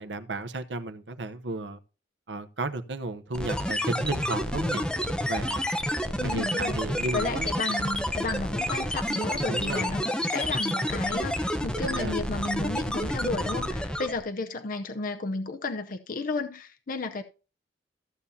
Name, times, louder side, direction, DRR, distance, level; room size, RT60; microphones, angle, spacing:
voice 1, 0.0-1.8 2.3-4.8 5.2-5.7 6.2-7.5 9.3-9.9 11.8-12.2, right 2 dB, 80° right, 0.8 m, -33 dB
sound 1, 3.3-14.2, equal, 5° left, 0.8 m, -29 dB
voice 2, 6.1-6.8 7.1-17.2, left 3 dB, 50° left, 0.6 m, -33 dB
14.5 x 7.1 x 2.7 m
head